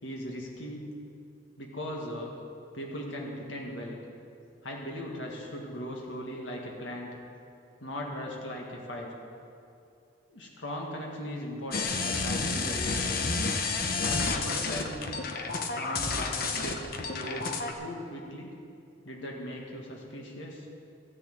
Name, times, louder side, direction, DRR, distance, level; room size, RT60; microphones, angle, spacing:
voice 1, 0.0-0.9 1.6-2.3 2.7-4.0 4.6-7.2 7.8-9.1 10.3-13.3 14.0-15.0 15.8-16.8 17.1-18.6 19.0-20.7, equal, 85° left, -1 dB, 1.7 m, -38 dB
sound 1, 11.7-17.7, left 4 dB, 55° left, 1.0 m, -30 dB
14.0 x 6.8 x 9.1 m, 2.6 s
head